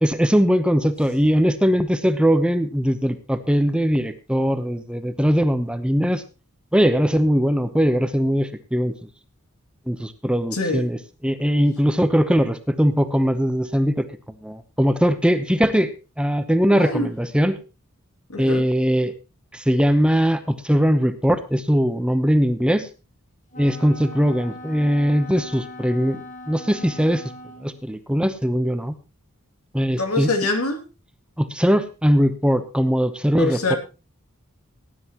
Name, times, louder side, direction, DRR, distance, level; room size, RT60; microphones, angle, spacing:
voice 1, 0.0-6.2 6.7-8.9 9.9-11.0 11.2-14.1 14.4-15.9 16.2-17.6 18.4-19.1 19.5-22.9 23.6-26.2 26.5-27.2 27.6-28.9 29.7-30.3 31.4-33.8, equal, 5° right, 10 dB, 0.9 m, -20 dB
voice 2, 10.5-10.9 16.7-17.1 18.3-18.7 30.0-30.9 33.4-33.8, left 2 dB, 85° left, 5 dB, 2.7 m, -24 dB
Wind instrument woodwind instrument, 23.5-27.8, left 1 dB, 35° left, 1.5 m, -40 dB
18.5 x 10.5 x 3.0 m, 0.30 s
head